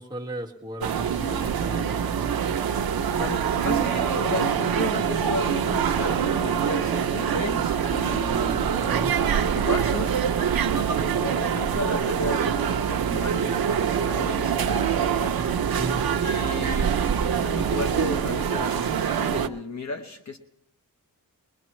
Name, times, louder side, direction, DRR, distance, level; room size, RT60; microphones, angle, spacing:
voice 1, 0.0-2.1 8.9-9.2 15.8-16.1, right 1 dB, 10° right, -3 dB, 1.8 m, -35 dB
sound 1, 0.8-19.5, right 8 dB, 85° right, 0.7 m, -25 dB
sound 2, 2.8-18.6, equal, 70° left, 2.1 m, -41 dB
voice 2, 3.2-8.7 9.5-10.2 11.0-15.4 16.2-16.9 17.4-20.4, left 3 dB, 50° left, 5 dB, 1.1 m, -34 dB
22.0 x 21.0 x 3.1 m, 0.83 s
wide cardioid pair, 145°, 35 cm